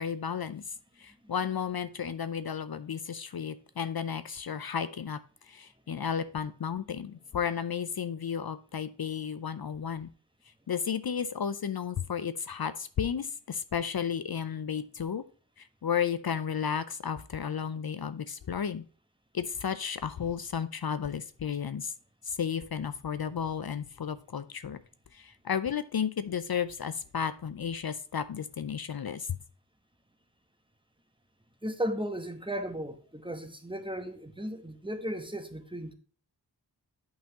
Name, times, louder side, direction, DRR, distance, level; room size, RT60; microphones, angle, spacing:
voice 1, 0.0-5.2 5.4-10.1 10.7-15.2 15.6-18.8 19.3-21.9 22.2-24.8 25.1-29.3, left 7 dB, 60° left, 0.5 m, -33 dB
voice 2, 31.6-35.9, equal, 10° right, 1.0 m, -35 dB
8.7 x 5.6 x 2.8 m
wide cardioid pair, 55°, 43 cm